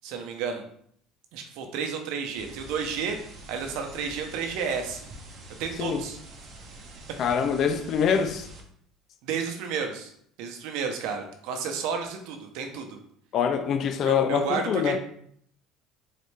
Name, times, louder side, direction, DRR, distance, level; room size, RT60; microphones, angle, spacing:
voice 1, 0.0-0.6 1.3-3.2 3.5-5.0 5.6-6.2 9.2-10.1 10.4-13.0 14.0-15.0, right 6 dB, 75° right, 0.7 m, -31 dB
sound 1, 2.3-8.6, right 1 dB, 40° right, 0.9 m, -46 dB
voice 2, 7.2-8.5 13.3-15.0, left 7 dB, 45° left, 0.5 m, -24 dB
4.0 x 3.2 x 3.3 m
cardioid pair, 135°, 0 cm